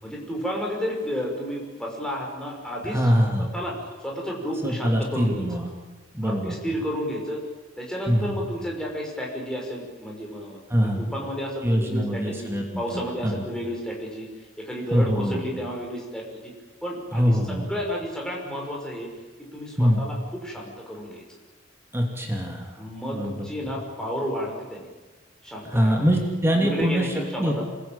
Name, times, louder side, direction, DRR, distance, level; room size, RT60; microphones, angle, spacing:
voice 1, 0.0-3.0 3.5-5.6 6.2-7.4 7.8-12.5 12.8-14.3 14.6-16.5 16.8-19.1 19.4-21.2 22.8-24.9 25.4-26.0 26.5-27.6, equal, 5° left, -1 dB, 5.9 m, -32 dB
voice 2, 2.8-3.5 4.6-5.7 6.1-6.5 8.1-8.4 10.7-11.1 11.6-13.3 14.9-15.4 17.1-17.7 19.8-20.0 21.9-22.8 23.1-23.5 25.6-27.6, equal, 15° right, 0 dB, 3.0 m, -23 dB
26.5 x 20.5 x 9.0 m, 1.3 s
head